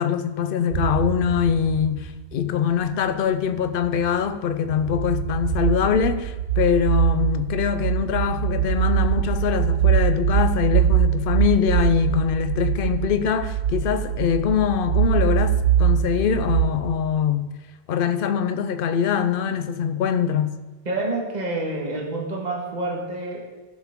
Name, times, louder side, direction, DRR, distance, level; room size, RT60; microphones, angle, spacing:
voice 1, 0.0-15.5 15.8-17.5 17.9-20.6, left 8 dB, 60° left, 0.8 m, -23 dB
sound 1, 0.7-2.5 3.6-4.2 4.6-16.7, right 10 dB, 85° right, 1.0 m, -23 dB
voice 2, 20.9-23.4, right 2 dB, 40° right, 1.7 m, -28 dB
14.5 x 6.5 x 3.6 m
omnidirectional pair, 1.1 m